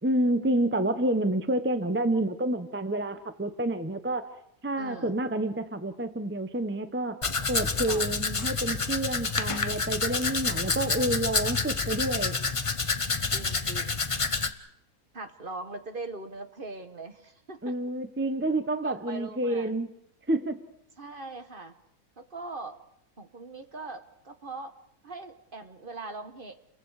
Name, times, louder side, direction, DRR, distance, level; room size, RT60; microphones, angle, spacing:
voice 1, 0.0-4.3 4.6-7.2 7.5-12.4 17.6-19.9 20.3-20.6, right 1 dB, 10° right, 10 dB, 0.7 m, -28 dB
voice 2, 4.8-5.2 7.9-8.2 13.3-14.0 15.1-17.7 18.8-19.8 21.0-21.7 22.2-22.8 23.2-24.8 25.0-26.6, right 3 dB, 35° right, 8 dB, 1.3 m, -41 dB
Domestic sounds home sounds, 7.2-14.5, left 4 dB, 25° left, 0.8 m, -28 dB
29.5 x 22.5 x 4.9 m, 0.75 s
omnidirectional pair, 1.7 m